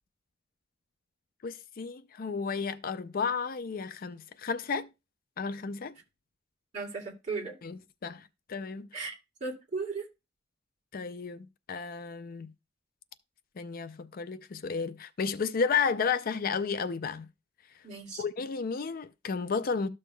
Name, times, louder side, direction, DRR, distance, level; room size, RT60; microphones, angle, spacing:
voice 1, 1.4-4.9 5.4-6.0 7.6-8.2 8.5-9.1 10.9-12.5 13.6-17.3 18.2-19.9, left 5 dB, 50° left, 0.4 m, -32 dB
voice 2, 6.7-7.6 8.9-9.1 9.4-10.1 17.8-18.2, right 4 dB, 40° right, 2.5 m, -36 dB
13.0 x 6.5 x 2.2 m
head